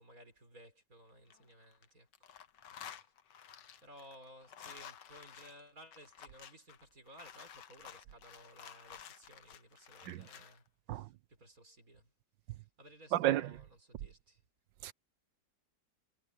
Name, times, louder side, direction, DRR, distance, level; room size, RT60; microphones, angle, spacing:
voice 1, 0.0-2.1 2.8-3.4 3.8-12.1 12.5-14.4, equal, 45° right, 6.3 m, -58 dB
sound 1, 1.1-1.9 2.1-10.6, left 9 dB, 70° left, 1.8 m, -53 dB
voice 2, 13.1-13.5 14.8-14.9, right 13 dB, 75° right, 1.4 m, -31 dB
omnidirectional pair, 2.0 m